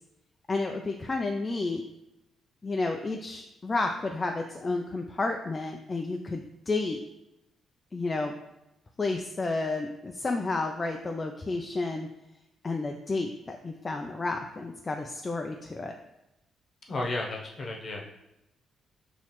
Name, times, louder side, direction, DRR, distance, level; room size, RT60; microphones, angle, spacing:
voice 1, 0.5-1.8 2.6-7.0 7.9-8.4 9.0-12.1 12.6-16.0, left 3 dB, 25° left, 3 dB, 0.3 m, -31 dB
voice 2, 16.9-18.1, left 2 dB, 40° left, 0 dB, 0.9 m, -33 dB
5.7 x 3.0 x 3.0 m, 0.89 s
cardioid pair, 130°, 0 cm